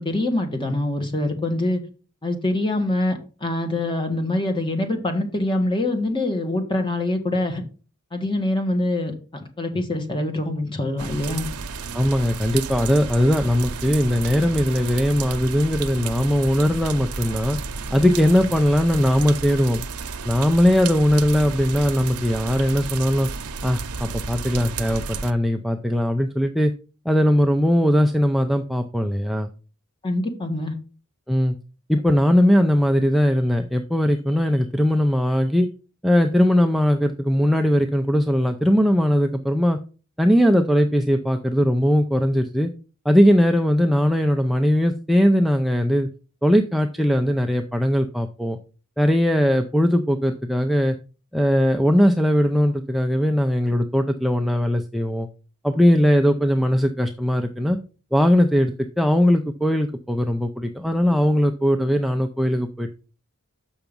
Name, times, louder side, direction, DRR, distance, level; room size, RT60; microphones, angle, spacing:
voice 1, 0.0-1.8 2.2-7.6 8.1-11.5 30.0-30.7, left 1 dB, 20° left, 5 dB, 1.5 m, -24 dB
sound 1, 11.0-25.3, right 4 dB, 80° right, 0.8 m, -32 dB
voice 2, 11.9-17.6 17.9-19.8 20.2-23.3 23.6-26.7 27.1-29.5 31.3-31.6 31.9-35.7 36.0-39.8 40.2-42.7 43.1-46.1 46.4-48.6 49.0-51.0 51.3-55.3 55.6-57.8 58.1-62.9, equal, ahead, 4 dB, 0.4 m, -19 dB
7.1 x 5.8 x 5.2 m, 0.36 s
head